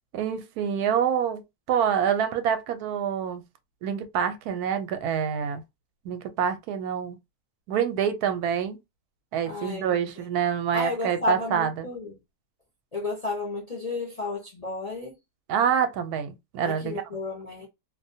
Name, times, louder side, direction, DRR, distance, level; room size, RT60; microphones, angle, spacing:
voice 1, 0.1-1.4 1.7-3.4 3.8-5.6 6.0-7.2 7.7-8.8 9.3-11.9 15.5-17.0, right 8 dB, 85° right, 1.1 m, -26 dB
voice 2, 9.4-10.2 10.7-12.1 12.9-15.2 16.6-17.7, left 3 dB, 45° left, 0.5 m, -32 dB
2.5 x 2.1 x 2.6 m
omnidirectional pair, 1.6 m